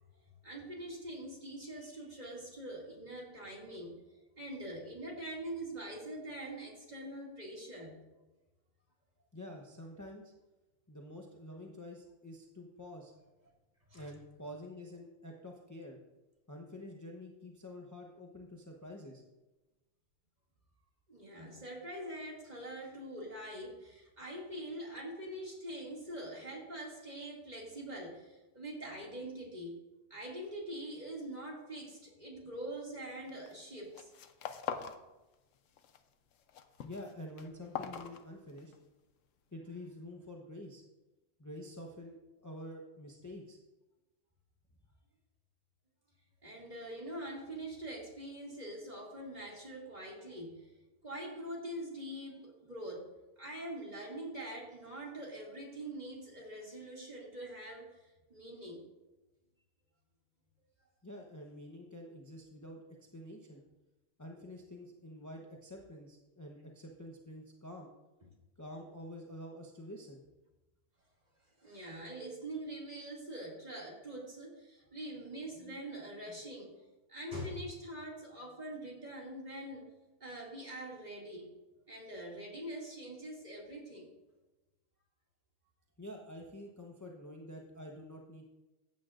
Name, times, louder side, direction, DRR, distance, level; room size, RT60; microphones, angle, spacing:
voice 1, 0.4-3.9 4.4-8.0 13.9-14.1 21.1-29.8 30.1-34.1 46.4-50.7 51.0-53.1 53.4-57.9 58.3-58.8 71.6-76.7 77.1-79.9 80.2-81.5 81.9-84.1, right 1 dB, 35° right, -3 dB, 2.6 m, -44 dB
voice 2, 9.3-10.3 10.9-13.1 13.9-16.0 16.5-19.2 36.8-38.7 39.5-40.8 41.4-43.6 61.0-62.8 63.1-63.6 64.2-67.9 68.6-70.2 75.6-75.8 76.3-76.4 86.0-88.5, left 1 dB, 15° left, 0 dB, 0.8 m, -48 dB
sound 1, 33.3-33.6 33.9-35.0 35.3-36.0 36.3-38.8, left 8 dB, 75° left, 1.1 m, -43 dB
15.0 x 9.3 x 2.5 m, 1.1 s
omnidirectional pair, 1.3 m